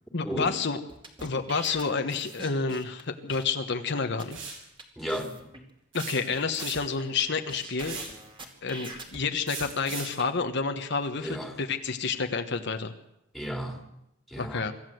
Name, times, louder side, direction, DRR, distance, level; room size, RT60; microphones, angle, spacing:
voice 1, 0.1-0.8 1.2-4.4 5.9-8.0 8.6-12.9 14.4-14.7, left 4 dB, 60° left, 1.2 m, -29 dB
sound 1, 0.9-3.0 3.3-3.4 3.9-4.0 4.2-4.4 4.8-4.9 5.1-5.6 6.0-7.2 7.5-9.2 9.6-10.2, right 2 dB, 25° right, 2.7 m, -43 dB
sound 2, 4.3-4.6 5.9-7.0 7.8-8.2 9.5-10.2, right 5 dB, 70° right, 6.6 m, -38 dB
voice 2, 5.0-5.5 11.2-11.5 13.3-13.8 14.3-14.7, equal, ahead, 2.6 m, -34 dB
24.5 x 14.0 x 7.9 m
head